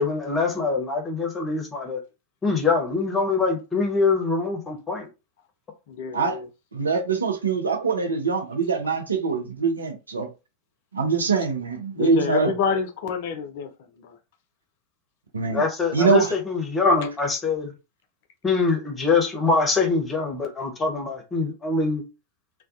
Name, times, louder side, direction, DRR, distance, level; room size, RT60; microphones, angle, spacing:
voice 1, 0.0-2.0 2.4-5.1 15.5-17.7 18.4-22.0, left 4 dB, 20° left, 0.8 m, -24 dB
voice 2, 5.9-6.5 12.0-13.7 14.0-14.2, left 6 dB, 50° left, 0.5 m, -27 dB
voice 3, 6.7-10.3 10.9-12.5 15.3-15.6 15.9-16.4, right 4 dB, 75° right, 0.6 m, -23 dB
2.2 x 2.2 x 2.5 m
figure-of-eight pair, 90°, 0 cm